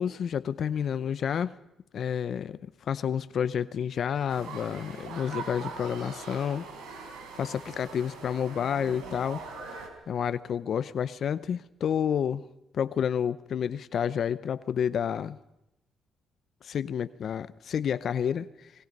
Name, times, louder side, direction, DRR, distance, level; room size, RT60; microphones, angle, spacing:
voice 1, 0.0-1.5 1.9-6.6 7.4-9.4 10.1-12.4 12.7-15.4 16.6-18.7, left 8 dB, 60° left, 14 dB, 0.7 m, -30 dB
sound 1, 4.3-9.9, right 4 dB, 90° right, 4.1 m, -42 dB
28.0 x 19.5 x 5.4 m, 0.85 s
cardioid pair, 90°, 0 cm